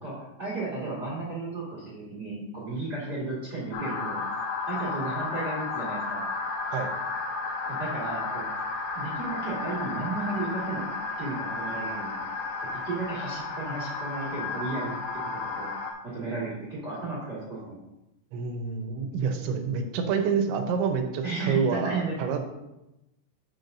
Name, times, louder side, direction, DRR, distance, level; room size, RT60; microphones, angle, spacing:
voice 1, 0.0-4.2 4.7-6.2 7.7-8.5 8.9-10.8 11.2-12.3 12.7-15.7 16.0-17.8 21.2-22.1, right 3 dB, 45° right, -6 dB, 1.2 m, -34 dB
sound 1, 3.7-15.9, left 4 dB, 90° left, 3.5 m, -33 dB
voice 2, 18.3-22.4, right 5 dB, 85° right, 5 dB, 3.2 m, -28 dB
9.1 x 7.8 x 2.6 m, 0.94 s
omnidirectional pair, 5.2 m